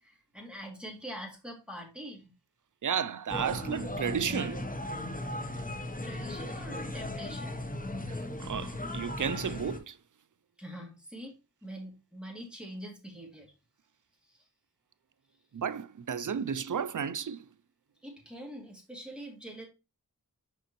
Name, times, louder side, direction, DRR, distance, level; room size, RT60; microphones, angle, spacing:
voice 1, 0.0-2.3 6.0-7.6 10.6-11.4 11.6-13.5 14.2-14.5 18.0-19.7, equal, 5° right, 2.6 m, -44 dB
voice 2, 2.8-4.6 8.1-10.0 15.5-17.4, right 7 dB, 55° right, 0.5 m, -33 dB
sound 1, 3.3-9.8, left 1 dB, 20° left, 1.0 m, -37 dB
6.8 x 5.2 x 3.1 m
wide cardioid pair, 45°, 36 cm